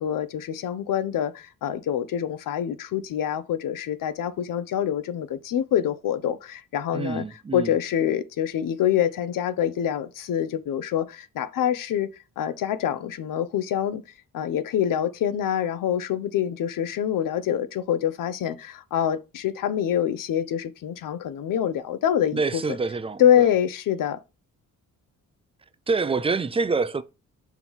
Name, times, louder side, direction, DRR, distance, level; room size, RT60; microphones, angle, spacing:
voice 1, 0.0-7.2 7.5-12.1 12.4-14.0 14.3-22.6 23.2-24.2, left 10 dB, 75° left, 0.8 m, -25 dB
voice 2, 6.9-7.7 22.3-23.5 25.9-27.0, right 4 dB, 15° right, 0.4 m, -26 dB
6.0 x 3.1 x 5.4 m
cardioid pair, 145°, 33 cm